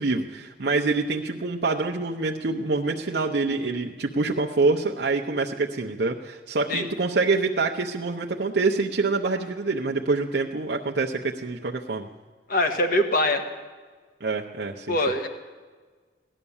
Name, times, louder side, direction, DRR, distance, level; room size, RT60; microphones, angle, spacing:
voice 1, 0.0-12.1 14.2-14.9, right 3 dB, 65° right, 0 dB, 0.7 m, -26 dB
voice 2, 12.5-13.4 14.9-15.3, left 1 dB, 55° left, 6 dB, 1.3 m, -23 dB
17.0 x 11.0 x 7.1 m, 1.5 s
head